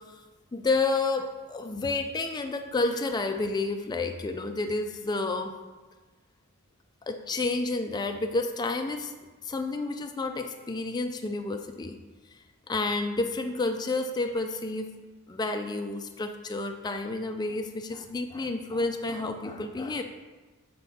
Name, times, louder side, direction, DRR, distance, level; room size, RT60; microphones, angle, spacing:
voice 1, 0.5-5.5 7.0-9.1 9.4-12.0 12.3-12.4 12.7-14.9 15.3-20.0, left 3 dB, 20° left, 5 dB, 0.3 m, -30 dB
7.7 x 4.5 x 4.1 m, 1.3 s
head